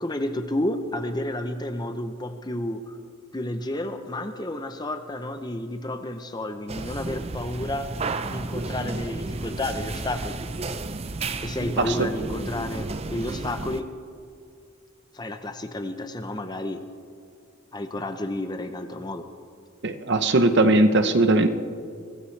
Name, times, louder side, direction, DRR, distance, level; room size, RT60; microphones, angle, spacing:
voice 1, 0.0-3.0 3.3-7.9 8.3-10.4 11.4-13.9 15.1-16.8 17.7-19.3, left 1 dB, 20° left, 8 dB, 0.7 m, -31 dB
sound 1, 6.7-13.8, right 3 dB, 25° right, 0.5 m, -32 dB
voice 2, 11.8-12.1 19.8-21.5, right 2 dB, 50° right, 9 dB, 0.8 m, -19 dB
24.0 x 16.0 x 3.3 m, 2.3 s
head